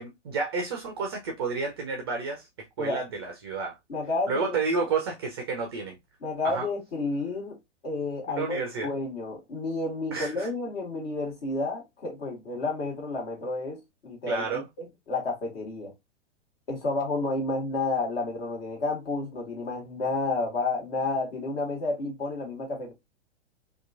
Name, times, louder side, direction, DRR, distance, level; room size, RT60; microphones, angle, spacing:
voice 1, 0.0-2.5 2.8-3.8 4.3-6.0 6.4-6.7 8.3-8.9 10.1-10.5 14.3-14.7, right 4 dB, 25° right, 0.3 m, -30 dB
voice 2, 3.9-4.6 6.2-7.6 7.8-15.9 16.7-22.9, left 3 dB, 55° left, 1.5 m, -31 dB
2.7 x 2.3 x 2.4 m
figure-of-eight pair, 105°, 36 cm